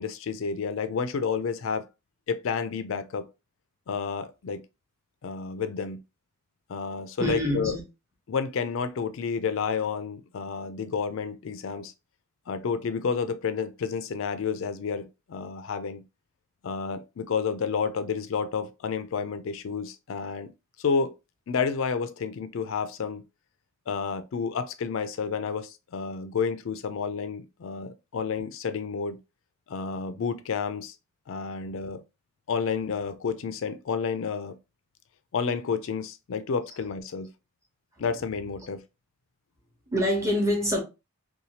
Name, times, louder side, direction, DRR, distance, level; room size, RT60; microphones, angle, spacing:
voice 1, 0.0-1.8 2.3-3.3 3.9-4.6 5.2-6.0 6.7-7.8 8.3-11.9 12.5-16.0 16.6-20.5 20.8-21.1 21.5-23.2 23.9-29.2 29.7-30.9 31.3-32.0 32.5-34.5 35.3-37.3 38.0-38.8, left 5 dB, 70° left, 0.4 m, -30 dB
voice 2, 7.2-7.8 39.9-40.8, equal, 15° right, 0.9 m, -25 dB
2.7 x 2.3 x 2.8 m
head